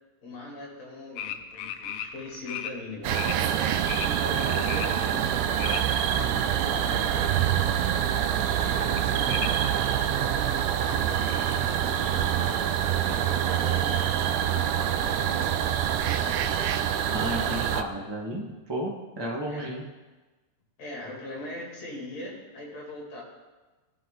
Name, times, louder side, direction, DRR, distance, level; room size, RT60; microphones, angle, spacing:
voice 1, 0.2-3.6 4.0-9.5 10.0-12.7 13.2-15.6 16.2-16.6 17.2-17.7 19.5-19.7 20.8-23.2, left 2 dB, 60° left, -4 dB, 3.9 m, -41 dB
sound 1, 1.2-2.7 3.1-3.4 3.8-5.8 6.2-7.2 7.6-8.0 8.3-9.5 10.0-10.1 10.3-10.4 10.7-12.0 12.3-12.4 12.6-12.7 13.3-13.4 13.9-14.0 14.3-14.4, left 10 dB, 85° left, 2.2 m, -37 dB
sound 2, 3.0-17.8, right 10 dB, 85° right, 2.1 m, -26 dB
voice 2, 17.1-19.8, right 1 dB, 30° right, -3 dB, 0.5 m, -32 dB
17.5 x 5.8 x 3.9 m, 1.2 s
omnidirectional pair, 3.5 m